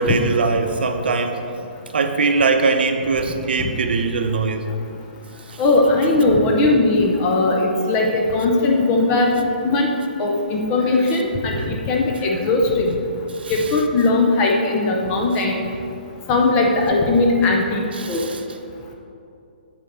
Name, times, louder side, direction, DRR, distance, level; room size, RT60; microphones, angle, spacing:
voice 1, 0.0-1.4 1.9-4.7 5.5-5.6 11.6-11.7 13.3-13.5 18.0-18.4, right 4 dB, 70° right, 6 dB, 0.8 m, -21 dB
voice 2, 5.6-9.3 9.6-9.9 10.2-11.6 11.9-13.0 13.5-15.6 16.3-17.8 18.1-18.2, left 2 dB, 15° left, 1 dB, 0.6 m, -18 dB
8.8 x 4.5 x 6.5 m, 2.6 s
hypercardioid pair, 175°, 6 cm